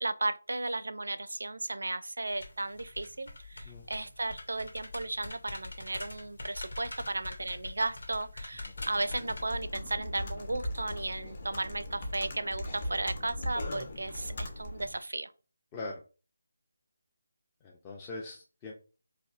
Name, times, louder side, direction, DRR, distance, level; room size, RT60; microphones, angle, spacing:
voice 1, 0.0-15.3, right 2 dB, 85° right, 0.4 m, -35 dB
sound 1, 2.3-9.4, left 2 dB, 80° left, 1.2 m, -44 dB
Computer keyboard, 8.8-15.0, left 1 dB, 40° left, 0.8 m, -39 dB
voice 2, 15.7-16.0 17.6-18.7, left 2 dB, 15° left, 0.4 m, -41 dB
4.2 x 2.6 x 2.4 m
figure-of-eight pair, 170°, 0 cm